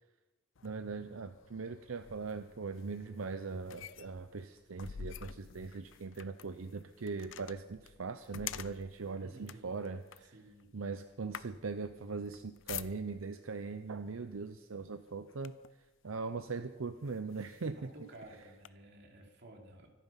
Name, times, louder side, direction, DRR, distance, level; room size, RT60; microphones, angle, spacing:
sound 1, 0.6-13.4 14.2-14.4 14.8-15.9 16.5-16.6 17.0-18.7, left 9 dB, 70° left, 0.6 m, -49 dB
voice 1, 0.6-10.4 10.7-15.6 16.0-17.9, right 4 dB, 85° right, 10 dB, 0.7 m, -40 dB
voice 2, 9.2-9.7 10.2-10.7 17.6-19.9, right 1 dB, 60° right, 2 dB, 3.0 m, -53 dB
25.0 x 9.0 x 5.8 m, 1.2 s
head